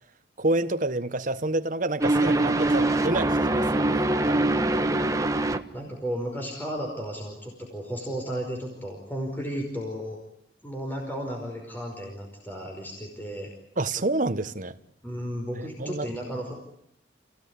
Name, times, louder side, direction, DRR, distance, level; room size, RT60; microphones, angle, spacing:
voice 1, 0.4-4.4 13.8-14.7 15.6-16.1, right 2 dB, 45° right, 1.2 m, -28 dB
sound 1, 2.0-5.6, right 2 dB, 20° right, 1.3 m, -23 dB
voice 2, 5.7-10.2 10.6-13.5 15.0-16.5, equal, 10° left, 5.1 m, -34 dB
29.0 x 17.0 x 9.7 m
head